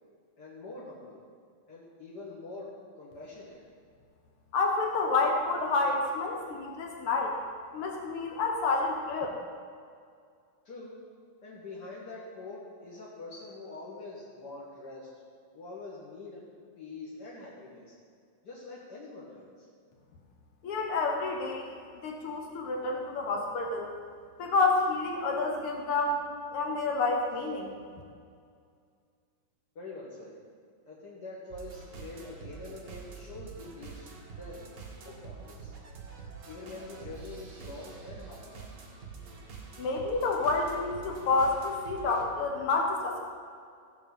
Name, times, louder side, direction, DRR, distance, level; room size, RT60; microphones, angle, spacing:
voice 1, 0.4-1.2 1.7-3.6 10.6-10.9 11.4-15.1 15.5-16.4 16.7-17.9 18.4-19.7 29.7-30.4 30.8-34.1 34.4-34.6 35.0-35.7 36.4-38.5, left 3 dB, 45° left, -7 dB, 1.3 m, -44 dB
voice 2, 4.5-7.4 7.7-9.3 20.6-21.7 22.0-23.9 24.4-26.2 26.5-27.8 39.8-43.2, left 3 dB, 80° left, 0 dB, 1.2 m, -29 dB
sound 1, 31.5-42.3, right 5 dB, 75° right, 0.9 m, -46 dB
15.5 x 5.4 x 7.2 m, 2.2 s
omnidirectional pair, 4.2 m